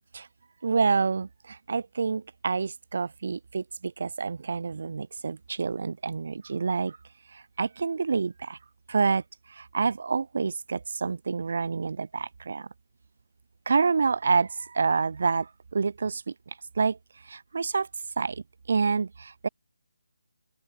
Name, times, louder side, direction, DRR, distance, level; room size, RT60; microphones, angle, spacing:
voice 1, 0.6-7.0 7.3-8.6 8.9-9.2 9.5-12.7 13.7-16.3 16.8-17.0 17.3-17.9 18.2-19.5, right 4 dB, 55° right, 0.8 m, -28 dB
open air
figure-of-eight pair, 155°, 0 cm